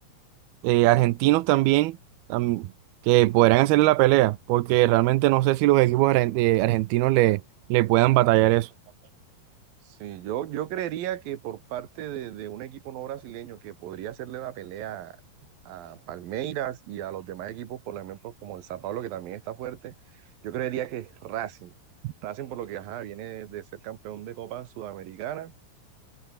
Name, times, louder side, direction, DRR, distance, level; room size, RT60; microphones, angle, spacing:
voice 1, 0.6-2.0 2.3-2.7 3.0-7.4 7.7-8.7, right 17 dB, 90° right, 2.8 m, -20 dB
voice 2, 9.8-15.2 15.7-20.0 20.4-21.7 22.2-25.5, right 12 dB, 70° right, 3.1 m, -35 dB
omnidirectional pair, 4.4 m